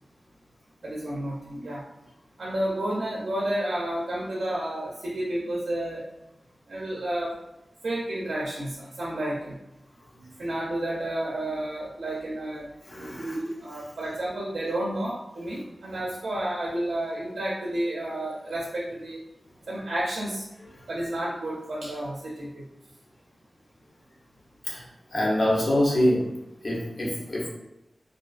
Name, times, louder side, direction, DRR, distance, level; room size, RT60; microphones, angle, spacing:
voice 1, 0.8-1.9 2.4-6.0 6.7-7.4 7.8-9.6 10.4-12.7 13.0-19.2 19.7-20.5 20.9-22.7, right 1 dB, 85° right, -5 dB, 0.4 m, -31 dB
voice 2, 12.9-13.3 24.7-24.8 25.1-26.2 26.6-27.5, left 1 dB, 50° left, -4 dB, 0.7 m, -24 dB
2.3 x 2.3 x 2.3 m, 0.89 s
wide cardioid pair, 95°, 0 cm